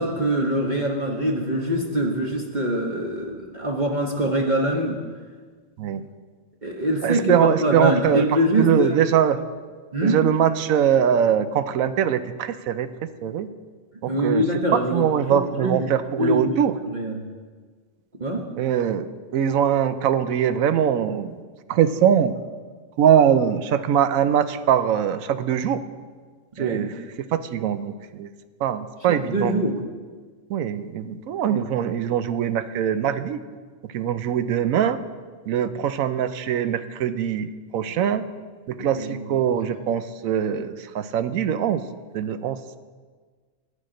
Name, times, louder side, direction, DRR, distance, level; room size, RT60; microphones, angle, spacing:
voice 1, 0.0-5.0 6.6-8.9 9.9-10.2 14.1-15.0 15.3-15.9 16.2-17.3 18.2-18.4 26.6-26.9 29.1-29.7 31.5-31.8 38.8-39.4, right 1 dB, 35° right, -2 dB, 1.1 m, -24 dB
voice 2, 7.0-8.2 8.6-9.4 10.0-13.5 14.0-14.4 14.7-16.7 18.6-19.1 19.3-21.4 21.7-22.3 23.0-25.8 26.6-26.9 27.3-28.3 28.6-29.5 30.5-33.4 33.9-35.0 35.5-38.2 38.7-41.8 42.1-42.8, right 9 dB, 85° right, 12 dB, 1.0 m, -22 dB
14.5 x 9.9 x 3.8 m, 1.5 s
omnidirectional pair, 1.4 m